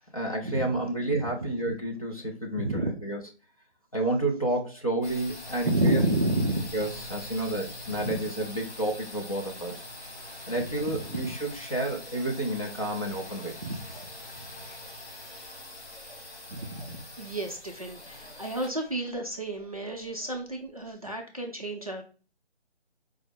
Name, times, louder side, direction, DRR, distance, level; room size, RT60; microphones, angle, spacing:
voice 1, 0.1-3.2 3.9-6.1 6.7-9.8 10.5-13.6, right 1 dB, 30° left, 0 dB, 0.6 m, -30 dB
voice 2, 2.6-3.0 5.6-6.6 7.9-8.2 11.1-11.2 13.6-14.1 14.7-14.9 16.0-16.2 16.5-22.0, right 1 dB, 35° right, 1 dB, 0.5 m, -31 dB
sound 1, 5.0-20.7, left 1 dB, 70° left, 1.9 m, -43 dB
4.8 x 2.0 x 3.4 m, 0.35 s
figure-of-eight pair, 165°, 34 cm